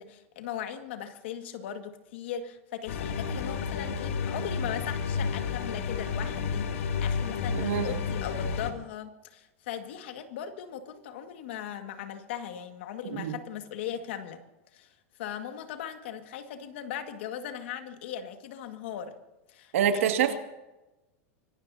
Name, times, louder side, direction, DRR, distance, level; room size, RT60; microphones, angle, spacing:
voice 1, 0.0-14.4 14.7-19.1 19.5-20.4, left 9 dB, 55° left, 6 dB, 1.9 m, -39 dB
sound 1, 2.9-8.7, left 6 dB, 90° left, 2.0 m, -31 dB
voice 2, 7.6-7.9 13.1-13.3 19.7-20.4, right 9 dB, 85° right, 5 dB, 2.1 m, -25 dB
25.0 x 18.5 x 2.8 m, 1.0 s
supercardioid pair, 180°, 7 cm